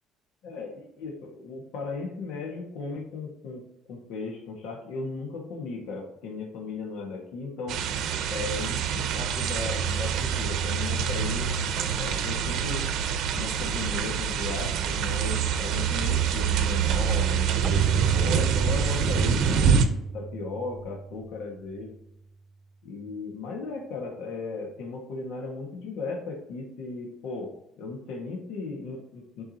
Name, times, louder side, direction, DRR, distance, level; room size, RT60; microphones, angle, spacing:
voice 1, 0.4-3.6 3.9-7.8 8.3-11.5 12.0-12.8 13.4-19.8 20.1-21.9 22.8-27.5 27.8-29.4, left 3 dB, 75° left, 0 dB, 1.7 m, -36 dB
sound 1, 7.7-19.9, right 7 dB, 60° right, 0.8 m, -26 dB
Keyboard (musical), 17.6-22.1, right 4 dB, 30° right, 0.5 m, -33 dB
11.0 x 4.7 x 2.9 m, 0.80 s
cardioid pair, 160°, 0 cm